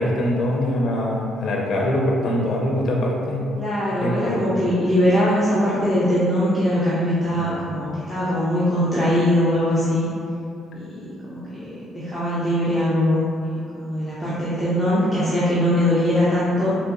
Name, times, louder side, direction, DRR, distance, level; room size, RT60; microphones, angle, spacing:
voice 1, 0.0-3.5 4.0-4.4 7.4-7.5, left 1 dB, 55° left, -2 dB, 0.4 m, -23 dB
voice 2, 3.6-10.1 10.7-13.2 13.7-16.7, equal, 5° right, -10 dB, 0.6 m, -21 dB
3.8 x 2.9 x 2.4 m, 2.6 s
cardioid pair, 120°, 0 cm